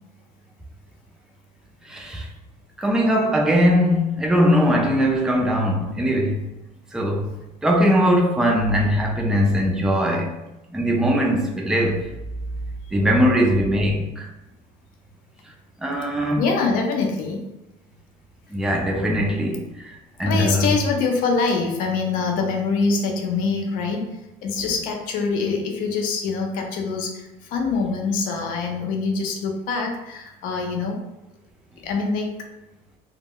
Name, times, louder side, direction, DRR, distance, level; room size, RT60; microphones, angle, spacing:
voice 1, 1.9-2.3 2.8-6.4 6.9-7.3 7.6-10.3 10.7-12.1 12.9-14.3 15.8-16.4 18.5-20.7, equal, 5° right, 0.3 m, -20 dB
voice 2, 16.4-17.4 19.0-19.1 20.3-24.1 24.4-31.0 31.8-32.4, left 4 dB, 65° left, 0.5 m, -24 dB
2.1 x 2.1 x 3.5 m
cardioid pair, 135°, 15 cm